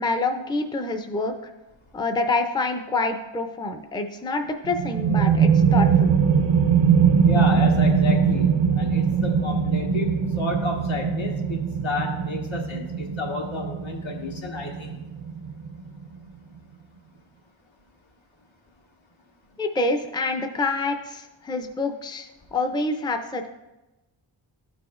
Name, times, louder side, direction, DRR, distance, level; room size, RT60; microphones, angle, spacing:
voice 1, 0.0-1.3 1.9-6.1 19.6-23.5, left 3 dB, 10° left, 5 dB, 0.4 m, -27 dB
sound 1, 4.6-16.0, right 6 dB, 65° right, 0.5 m, -21 dB
voice 2, 7.2-15.0, left 3 dB, 80° left, -1 dB, 1.5 m, -31 dB
12.5 x 4.9 x 2.4 m, 1.0 s
wide cardioid pair, 95°, 47 cm